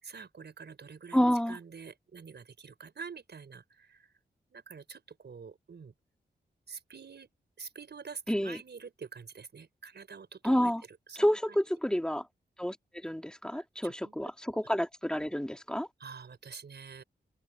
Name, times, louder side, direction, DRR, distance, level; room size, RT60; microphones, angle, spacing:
voice 1, 0.0-4.1 4.5-5.9 6.7-7.3 7.6-11.6 12.1-12.2 13.5-14.3 16.0-17.0, right 5 dB, 70° right, 4.3 m, -47 dB
voice 2, 1.1-1.6 8.3-8.6 10.4-10.8 11.2-12.2 12.6-15.9, equal, 5° left, 2.5 m, -29 dB
open air
cardioid pair, 55°, 19 cm